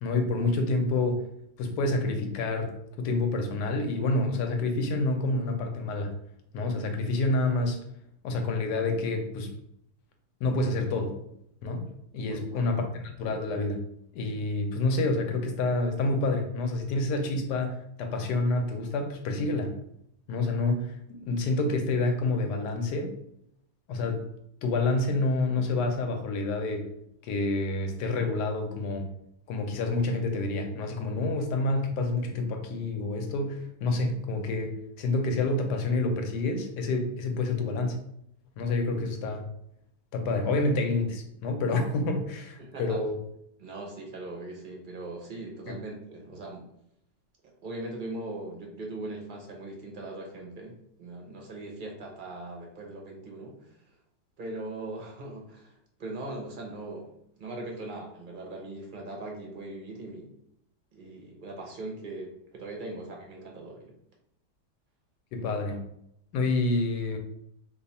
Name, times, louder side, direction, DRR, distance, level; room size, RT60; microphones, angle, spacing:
voice 1, 0.0-1.3 1.6-6.1 6.5-7.8 8.2-9.5 10.4-11.2 11.6-11.9 12.1-13.8 14.1-19.7 20.3-23.1 23.9-24.3 24.6-26.9 27.2-29.1 29.5-38.0 38.6-39.5 40.1-43.1 45.7-45.8 65.3-65.9 66.3-67.2, left 2 dB, 85° left, 5 dB, 1.2 m, -28 dB
voice 2, 12.3-12.9 42.6-43.0 43.6-46.7 47.6-53.7 54.4-55.7 56.0-57.1 57.4-60.3 60.9-63.9, right 2 dB, 55° right, 0 dB, 0.5 m, -40 dB
3.0 x 2.3 x 4.0 m, 0.76 s
omnidirectional pair, 1.8 m